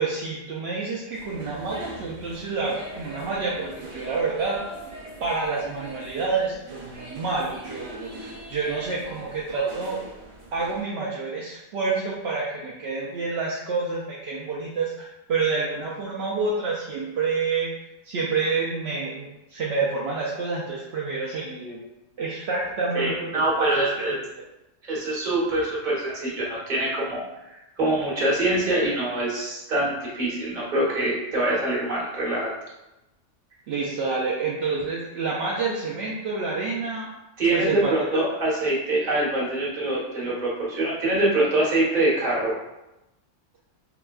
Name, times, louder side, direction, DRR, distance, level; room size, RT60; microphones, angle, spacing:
voice 1, 0.0-4.6 5.2-10.0 10.5-17.7 18.0-21.8 22.2-23.9 33.7-37.1 37.5-38.2, right 4 dB, 65° right, -4 dB, 0.7 m, -28 dB
sound 1, 1.1-10.8, right 1 dB, 85° right, 1.3 m, -41 dB
voice 2, 22.9-24.1 24.8-27.2 27.5-32.5 37.4-42.5, right 1 dB, 35° right, -6 dB, 1.1 m, -24 dB
4.8 x 2.2 x 2.3 m, 0.94 s
omnidirectional pair, 1.4 m